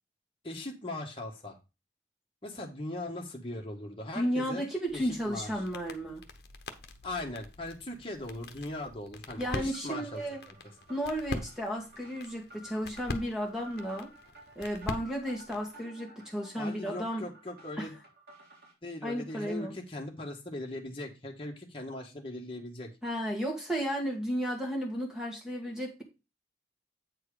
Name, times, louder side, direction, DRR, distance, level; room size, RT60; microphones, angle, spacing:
voice 1, 0.4-1.6 2.4-4.6 4.9-5.5 7.0-10.2 11.3-11.4 16.6-17.9 18.8-22.9, left 1 dB, 30° left, 1.6 m, -39 dB
voice 2, 4.1-6.2 9.4-10.4 10.9-14.1 14.6-17.3 17.8-17.9 19.0-19.7 23.0-26.0, equal, 5° right, 2.0 m, -33 dB
sound 1, 4.9-15.7, left 2 dB, 65° left, 1.0 m, -44 dB
sound 2, 9.5-18.7, right 1 dB, 60° right, 3.6 m, -54 dB
8.8 x 4.6 x 4.9 m
head